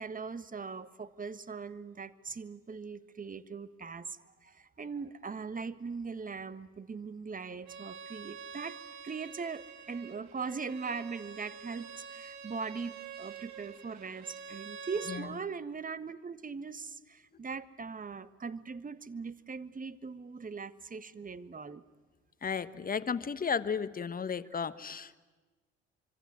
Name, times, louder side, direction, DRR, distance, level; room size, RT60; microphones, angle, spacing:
voice 1, 0.0-8.8 9.0-21.8, right 5 dB, 25° right, 15 dB, 1.5 m, -40 dB
Bowed string instrument, 7.7-15.3, right 6 dB, 55° right, 3.0 m, -47 dB
voice 2, 22.4-25.2, left 6 dB, 25° left, 13 dB, 1.3 m, -34 dB
25.0 x 25.0 x 9.5 m, 1.3 s
hypercardioid pair, 55°, 33 cm